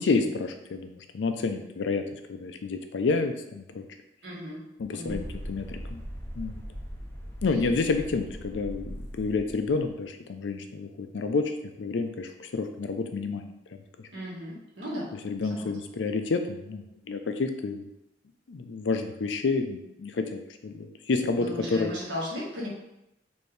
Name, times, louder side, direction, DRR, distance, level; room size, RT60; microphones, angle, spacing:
voice 1, 0.0-2.0 2.3-3.9 4.8-6.0 6.4-6.6 7.4-11.5 11.8-13.5 15.2-17.8 18.5-21.9, left 4 dB, 85° left, 7 dB, 0.4 m, -29 dB
voice 2, 4.2-4.6 4.9-5.2 14.1-15.1 15.5-15.7 21.4-22.7, left 1 dB, 80° right, -5 dB, 1.5 m, -36 dB
sound 1, 5.1-9.9, equal, 15° left, 0.5 m, -40 dB
4.3 x 2.7 x 3.2 m, 0.86 s
head